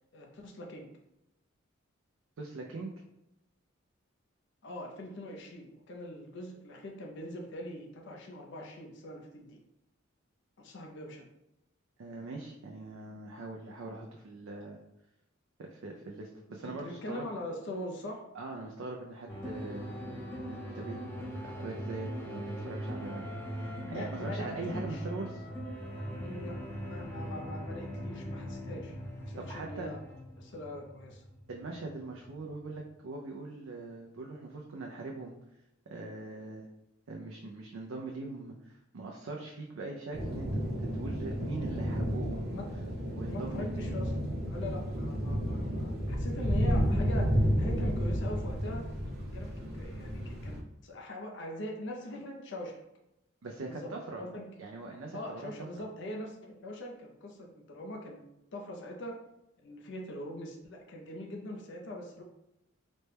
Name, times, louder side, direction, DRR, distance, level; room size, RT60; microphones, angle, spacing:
voice 1, 0.1-0.9 4.6-9.6 10.6-11.3 16.8-18.2 23.8-25.1 26.2-26.6 26.9-30.0 30.4-31.2 42.5-42.7 43.3-44.1 44.5-48.9 49.3-52.8 53.7-53.9 54.2-54.6 55.1-58.2 58.5-59.2 59.6-62.2, left 1 dB, 60° left, 1 dB, 0.6 m, -42 dB
voice 2, 2.4-2.9 12.0-14.8 15.6-17.2 18.3-19.9 20.5-23.3 23.5-25.4 29.4-29.9 31.5-35.3 35.9-36.7 37.1-40.6 40.9-42.6 43.1-44.0 53.4-54.2 54.6-55.8, right 3 dB, 75° right, 0 dB, 0.5 m, -42 dB
sound 1, 19.3-32.9, equal, 10° left, 0.6 m, -41 dB
sound 2, 40.1-50.6, equal, 50° right, 0.9 m, -31 dB
4.1 x 2.2 x 3.3 m, 0.86 s
head